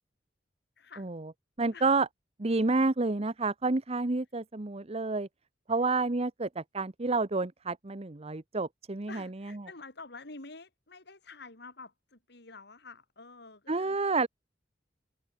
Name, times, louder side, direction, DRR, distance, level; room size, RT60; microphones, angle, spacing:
voice 1, 0.8-1.1 1.7-1.9 9.1-14.0, left 3 dB, 65° left, 3.5 m, -48 dB
voice 2, 1.6-2.1 2.4-5.3 5.7-9.3 13.7-14.3, right 3 dB, 35° right, 0.9 m, -29 dB
open air
head